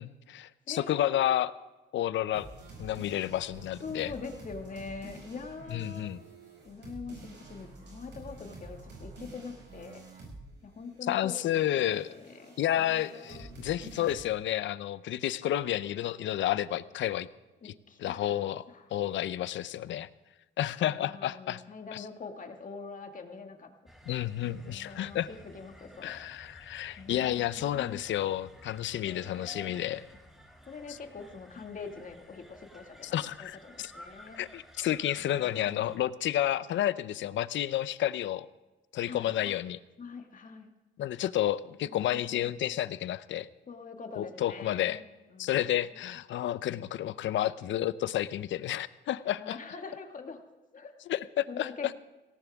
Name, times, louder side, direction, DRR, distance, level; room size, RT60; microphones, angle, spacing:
voice 1, 0.0-1.5 1.9-2.5 2.8-4.1 5.7-6.2 11.1-12.1 12.6-17.3 17.6-17.7 18.0-18.6 18.9-20.1 20.6-21.6 21.9-22.1 24.1-25.3 26.0-30.0 30.9-31.0 33.0-33.9 34.4-38.5 38.9-39.8 41.0-43.5 44.2-45.0 45.4-49.6 51.1-51.7, left 12 dB, 70° left, 16 dB, 0.7 m, -31 dB
voice 2, 0.7-1.4 3.8-6.1 6.7-10.0 10.6-13.5 17.6-18.4 18.7-18.9 20.8-23.7 24.7-26.2 27.0-28.0 29.0-29.7 30.6-34.4 35.2-36.0 39.0-39.6 40.0-40.7 41.8-42.6 43.7-45.1 45.3-45.8 49.4-50.4 50.7-50.9 51.5-51.9, left 4 dB, 40° left, 4 dB, 2.1 m, -44 dB
sound 1, 2.3-10.5 10.8-14.2, right 2 dB, 65° right, 6.2 m, -49 dB
sound 2, 23.9-36.0, equal, ahead, 2.4 m, -53 dB
18.5 x 17.5 x 3.6 m, 1.1 s
cardioid pair, 90°, 20 cm